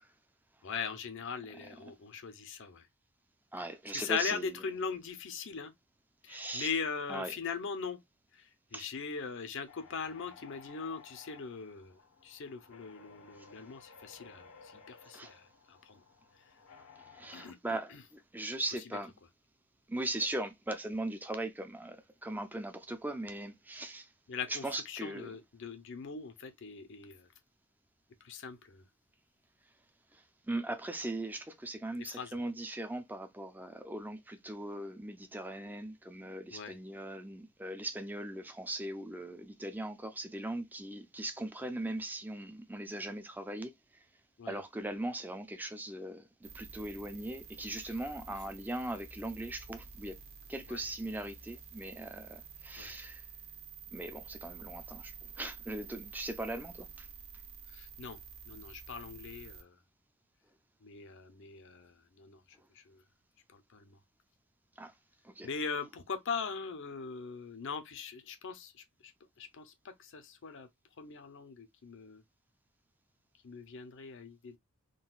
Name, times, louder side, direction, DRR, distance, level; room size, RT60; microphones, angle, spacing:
voice 1, 0.6-2.9 3.9-5.7 6.2-8.0 8.3-16.0 17.3-18.0 24.3-27.3 28.2-28.8 32.0-32.4 36.5-36.8 44.4-44.6 50.7-50.8 52.8-52.9 57.7-58.2 58.5-59.8 60.8-63.0 63.5-64.0 65.4-69.1 69.4-70.7 71.0-72.2 73.4-74.6, left 5 dB, 60° left, 0.6 m, -41 dB
voice 2, 3.5-4.5 6.3-6.7 7.1-7.3 8.7-8.9 15.1-15.3 17.1-19.1 19.9-24.1 24.5-25.3 30.5-43.7 44.5-50.2 50.5-53.2 53.9-57.1 64.8-64.9 65.2-65.5, right 1 dB, 10° right, 0.4 m, -39 dB
sound 1, 9.7-17.5, left 5 dB, 85° left, 1.0 m, -57 dB
sound 2, 46.4-59.6, right 5 dB, 45° right, 0.9 m, -50 dB
3.8 x 2.3 x 2.3 m
head